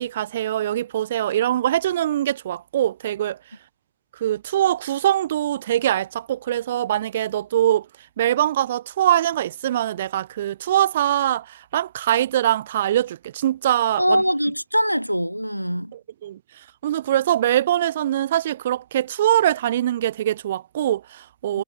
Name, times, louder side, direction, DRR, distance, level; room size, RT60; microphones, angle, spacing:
voice 1, 0.0-3.4 4.2-7.9 8.2-14.2 15.9-16.4 16.8-21.6, right 12 dB, 60° right, 1.4 m, -23 dB
voice 2, 14.0-15.9 21.5-21.6, equal, 90° right, 2.8 m, -22 dB
figure-of-eight pair, 90°, 0 cm